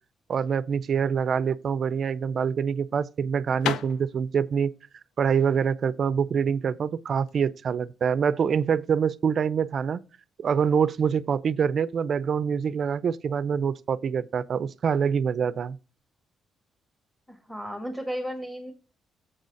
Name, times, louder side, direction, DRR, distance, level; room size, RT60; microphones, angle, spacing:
voice 1, 0.3-4.7 5.2-10.0 10.4-15.8, right 7 dB, 55° right, 0.4 m, -25 dB
sound 1, 1.7-7.4, left 9 dB, 85° left, 0.5 m, -37 dB
voice 2, 17.3-18.7, equal, ahead, 1.4 m, -34 dB
7.7 x 4.0 x 6.3 m
cardioid pair, 90°, 0 cm